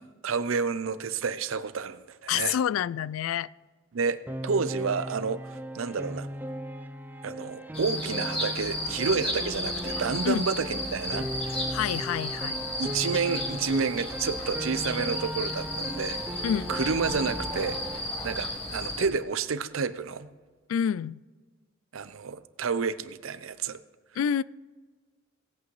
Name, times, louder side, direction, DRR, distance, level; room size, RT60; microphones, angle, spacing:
voice 1, 0.2-2.6 3.9-4.2 4.4-6.3 7.2-11.3 12.8-16.2 16.7-20.3 21.9-23.8, right 5 dB, 80° right, 13 dB, 0.6 m, -30 dB
voice 2, 2.3-3.5 10.2-10.4 11.7-12.7 16.4-16.7 20.7-21.2 24.2-24.4, left 8 dB, 85° left, 18 dB, 0.3 m, -28 dB
Piano, 4.3-18.0, right 1 dB, 10° right, 0.5 m, -37 dB
sound 1, 7.7-19.1, left 1 dB, 30° left, 1.8 m, -34 dB
18.5 x 8.4 x 3.2 m, 1.4 s
head